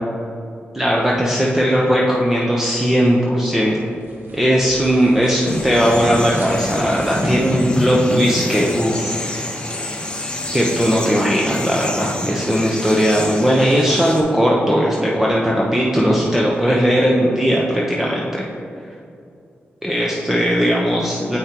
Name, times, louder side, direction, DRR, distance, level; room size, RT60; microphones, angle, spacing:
voice 1, 0.7-3.8 4.3-9.1 10.5-18.4 19.8-21.4, equal, 10° right, -4 dB, 0.9 m, -18 dB
sound 1, 3.6-8.5, right 1 dB, 55° right, 1.1 m, -39 dB
sound 2, 5.5-14.2, left 1 dB, 25° left, 1.1 m, -26 dB
8.1 x 5.6 x 3.0 m, 2.5 s
cardioid pair, 55°, 4 cm